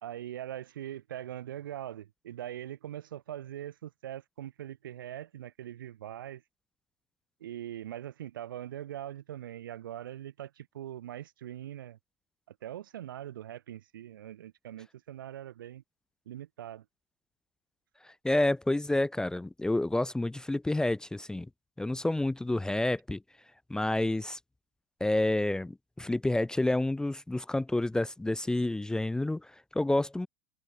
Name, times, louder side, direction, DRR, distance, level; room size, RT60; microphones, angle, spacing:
voice 1, 0.0-6.4 7.4-12.0 12.5-15.8 16.3-16.8, right 11 dB, 80° right, 1.3 m, -42 dB
voice 2, 18.2-21.5 21.8-23.2 23.7-24.4 25.0-29.4 29.7-30.3, left 1 dB, 5° left, 0.5 m, -29 dB
hypercardioid pair, 95°, 11 cm